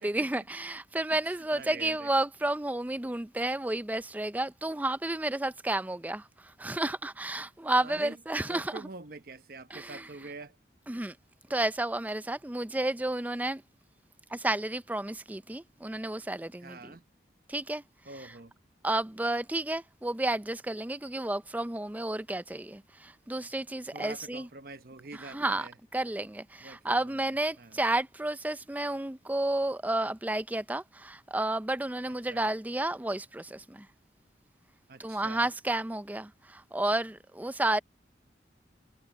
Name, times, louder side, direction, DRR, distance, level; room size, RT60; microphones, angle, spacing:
voice 1, 0.0-8.9 9.7-10.1 10.9-11.2 11.5-13.6 14.3-16.9 17.5-17.8 18.2-18.3 18.8-24.5 25.1-33.9 35.0-37.8, right 2 dB, 10° right, 0.4 m, -31 dB
voice 2, 1.5-2.1 7.8-8.2 8.5-10.6 16.6-17.0 18.1-18.5 23.9-25.7 26.6-27.2 27.6-27.8 32.3-32.5 34.9-35.5, right 3 dB, 50° right, 0.8 m, -45 dB
head